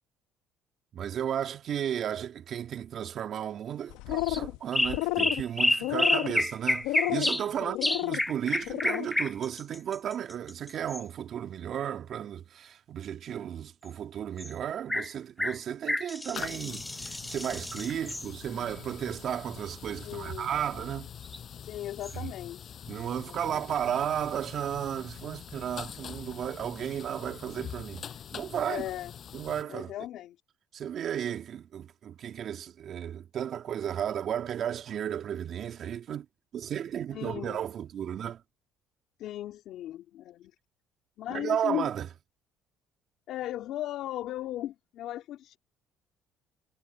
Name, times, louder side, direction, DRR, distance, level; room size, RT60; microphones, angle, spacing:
voice 1, 0.9-7.8 8.0-21.1 22.1-22.3 22.9-28.8 29.3-29.9 30.7-36.3 36.5-38.4 41.3-42.1, right 9 dB, 55° right, 2.6 m, -34 dB
sound 1, 3.9-4.6 4.8-5.4 5.8-6.4 6.8-7.3 7.7-8.2 8.6-9.1, left 18 dB, 85° left, 0.9 m, -31 dB
sound 2, 4.2-4.4 4.7-7.5 7.8-11.0 14.4-14.5 14.9-15.1 15.4-18.3 21.2-21.4 22.0-22.1, left 1 dB, 10° left, 0.7 m, -29 dB
voice 2, 7.6-8.1 20.0-20.5 21.6-22.7 23.2-23.6 28.6-29.1 29.7-30.4 37.1-37.6 39.2-40.5 41.2-41.9 43.3-45.6, left 13 dB, 70° left, 3.4 m, -37 dB
sound 3, 16.3-29.6, left 8 dB, 50° left, 7.4 m, -44 dB
supercardioid pair, 80°, 0 cm